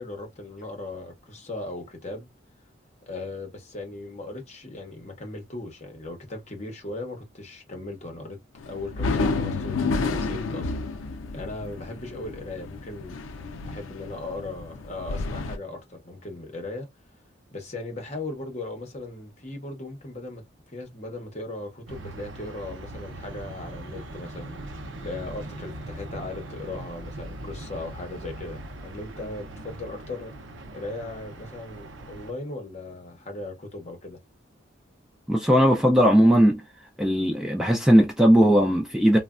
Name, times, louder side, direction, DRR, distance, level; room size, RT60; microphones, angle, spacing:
voice 1, 0.0-2.3 3.1-8.4 8.7-10.7 11.3-13.2 13.7-16.9 17.5-20.4 20.7-24.8 25.0-30.3 30.7-34.2, left 2 dB, 35° left, 0.9 m, -37 dB
sound 1, 8.6-15.6, left 3 dB, 85° left, 0.4 m, -30 dB
sound 2, 21.9-32.3, right 1 dB, 75° right, 0.5 m, -40 dB
voice 2, 35.3-36.6 37.0-39.2, equal, 5° right, 0.4 m, -18 dB
3.2 x 2.1 x 2.4 m
head